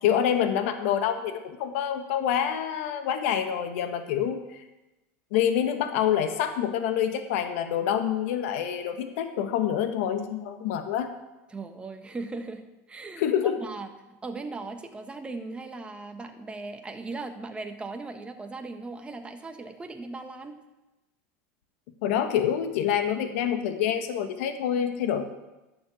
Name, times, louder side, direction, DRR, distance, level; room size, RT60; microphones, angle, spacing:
voice 1, 0.0-4.4 5.3-11.1 13.2-13.5 22.0-25.2, left 9 dB, 75° left, 7 dB, 1.6 m, -26 dB
voice 2, 11.5-20.6, right 3 dB, 15° right, 5 dB, 1.4 m, -38 dB
11.5 x 7.0 x 8.3 m, 1.0 s
supercardioid pair, 115°, 7 cm